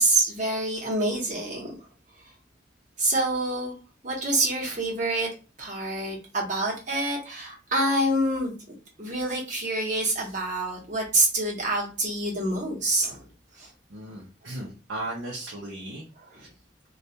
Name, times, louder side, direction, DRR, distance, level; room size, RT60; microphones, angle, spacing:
voice 1, 0.0-1.7 3.0-3.7 4.0-5.3 5.6-13.2 13.6-13.7 16.3-16.4, right 2 dB, 40° right, -2 dB, 0.9 m, -26 dB
voice 2, 13.9-16.1 16.4-16.5, right 1 dB, 80° right, -4 dB, 0.6 m, -36 dB
2.3 x 2.2 x 2.7 m, 0.33 s
head